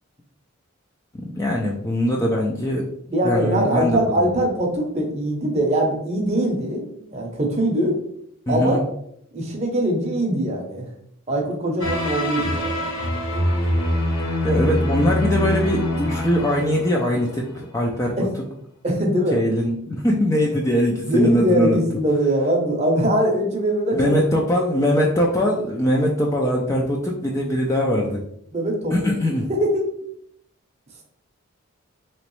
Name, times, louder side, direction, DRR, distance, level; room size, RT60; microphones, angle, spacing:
voice 1, 1.1-2.8 3.2-4.0 8.5-8.8 14.4-18.2 19.3-21.8 23.9-28.2 28.9-29.5, equal, 15° left, -2 dB, 0.3 m, -21 dB
voice 2, 3.1-8.0 8.5-8.8 9.3-10.9 11.3-13.0 13.4-14.0 18.2-18.3 18.8-19.4 21.1-24.1 28.5-29.1 29.6-30.0, right 1 dB, 30° right, 1 dB, 0.6 m, -22 dB
sound 1, 11.8-17.6, left 1 dB, 70° left, 0.9 m, -24 dB
3.0 x 3.0 x 3.0 m, 0.71 s
head